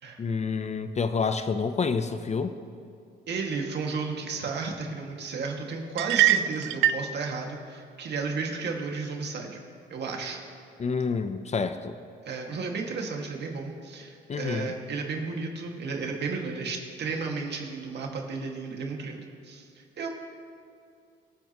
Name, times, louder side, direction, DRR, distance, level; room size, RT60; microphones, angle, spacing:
voice 1, 0.2-2.5 10.8-11.9 14.3-14.7, left 5 dB, 35° left, 9 dB, 0.7 m, -28 dB
voice 2, 3.3-9.6 9.9-10.4 12.2-20.1, right 4 dB, 60° right, 1 dB, 2.0 m, -33 dB
sound 1, 6.0-7.1, right 12 dB, 80° right, 0.4 m, -22 dB
24.5 x 8.5 x 3.0 m, 2.4 s
cardioid pair, 90°, 20 cm